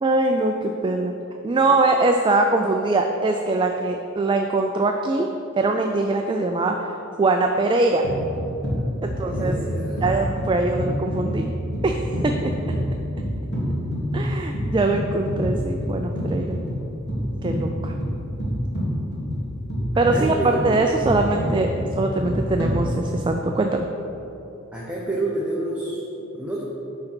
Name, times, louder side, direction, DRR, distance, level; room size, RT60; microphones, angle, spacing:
voice 1, 0.0-1.1 1.4-5.3 5.5-8.0 9.0-9.6 10.0-11.5 11.8-12.5 14.1-16.6 17.4-17.9 20.0-23.9, right 2 dB, 25° right, 4 dB, 0.3 m, -22 dB
sound 1, 8.0-23.4, equal, 55° left, 2.0 m, -27 dB
voice 2, 8.8-10.0 19.9-20.7 24.7-26.6, right 1 dB, 5° right, -6 dB, 0.9 m, -29 dB
10.5 x 3.8 x 6.0 m, 3.0 s
head